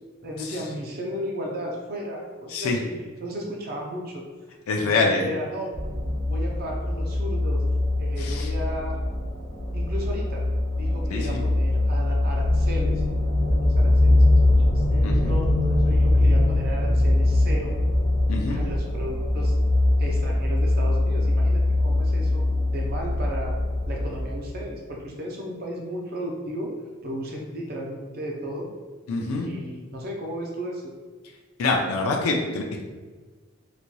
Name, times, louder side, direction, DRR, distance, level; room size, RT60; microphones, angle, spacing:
voice 1, 0.2-2.9 3.2-4.2 4.8-5.7 6.3-7.6 8.0-9.0 9.7-10.4 10.8-14.2 14.7-17.7 18.5-19.5 20.0-22.4 22.7-23.5 23.9-26.7 27.0-28.7 29.4-30.9, equal, 45° right, -1 dB, 0.5 m, -34 dB
voice 2, 2.5-2.8 4.7-5.3 8.2-8.5 11.1-11.4 15.0-15.3 18.3-18.7 29.1-29.5 31.6-32.8, left 3 dB, 80° left, 0 dB, 0.4 m, -25 dB
sound 1, 5.7-24.4, left 1 dB, 10° left, 0.8 m, -22 dB
3.9 x 3.0 x 2.2 m, 1.4 s
head